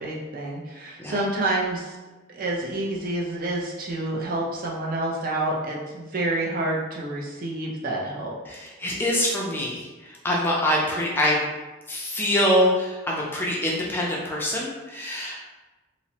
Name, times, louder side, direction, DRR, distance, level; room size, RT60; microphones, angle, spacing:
voice 1, 0.0-2.0 2.3-8.3, right 2 dB, 45° right, -3 dB, 0.5 m, -28 dB
voice 2, 8.5-9.9 10.2-11.4 11.9-15.4, left 1 dB, 10° left, -4 dB, 0.3 m, -24 dB
2.9 x 2.0 x 2.7 m, 1.1 s
head